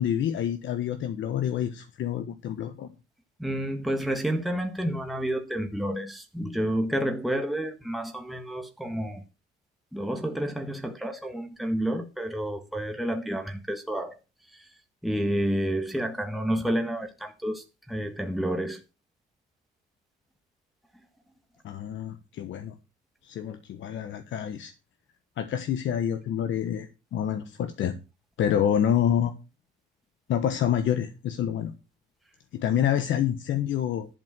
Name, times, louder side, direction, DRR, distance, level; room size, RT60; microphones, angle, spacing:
voice 1, 0.0-2.9 21.6-22.7 23.2-24.7 25.4-27.9 28.4-29.4 30.3-31.7 32.5-34.1, left 9 dB, 75° left, 1.2 m, -27 dB
voice 2, 3.4-9.2 9.9-14.2 14.5-14.7 15.0-18.8, right 1 dB, ahead, 1.5 m, -30 dB
11.5 x 5.1 x 7.5 m
cardioid pair, 90°, 20 cm